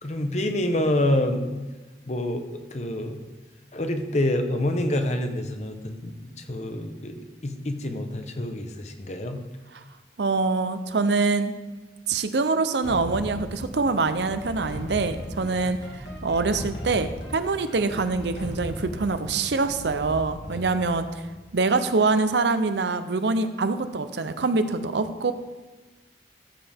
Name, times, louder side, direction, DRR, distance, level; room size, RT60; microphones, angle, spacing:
voice 1, 0.0-1.6 2.1-3.2 3.7-9.4 15.4-15.5 20.5-20.7, left 1 dB, 40° left, 6 dB, 0.9 m, -27 dB
voice 2, 10.2-11.5 12.1-21.1 21.5-25.3, right 3 dB, 75° right, 10 dB, 0.7 m, -25 dB
sound 1, 12.8-21.7, equal, 90° left, 2.7 m, -38 dB
14.0 x 7.7 x 3.5 m, 1.2 s
head